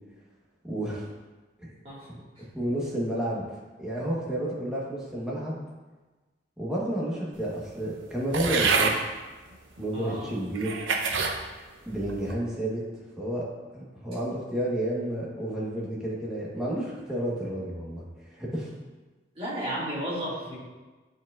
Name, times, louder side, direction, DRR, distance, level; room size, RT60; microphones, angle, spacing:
voice 1, 0.6-1.1 1.6-1.7 2.1-3.4 3.8-5.6 6.6-8.9 9.8-10.8 11.9-12.8 13.2-13.5 13.7-18.7, right 1 dB, 5° right, -6 dB, 1.2 m, -31 dB
sound 1, 8.3-9.0 9.8-9.9 10.5-11.4 11.9-12.3, right 4 dB, 85° right, 0.7 m, -26 dB
voice 2, 9.9-10.2 19.4-20.6, equal, 30° right, -8 dB, 1.9 m, -33 dB
8.9 x 4.4 x 2.5 m, 1.2 s
head